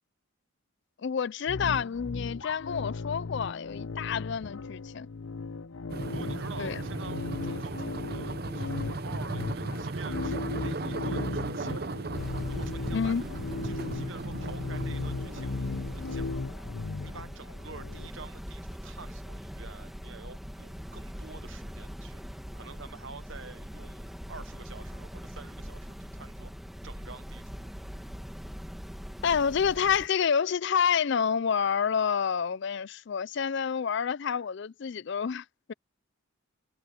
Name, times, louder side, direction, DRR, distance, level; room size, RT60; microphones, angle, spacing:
voice 1, 1.0-5.1 6.6-6.8 12.9-13.2 29.2-35.7, left 7 dB, 55° left, 0.4 m, -28 dB
sound 1, 1.5-18.1, left 3 dB, 80° left, 0.7 m, -37 dB
sound 2, 5.9-16.3, right 3 dB, 45° right, 0.7 m, -36 dB
voice 2, 6.1-12.1 12.5-13.1 13.6-15.7 16.0-16.5 17.0-22.2 22.5-25.9 26.1-26.5 26.8-27.7, right 4 dB, 65° right, 1.1 m, -48 dB
sound 3, 12.2-30.1, equal, ahead, 1.6 m, -42 dB
head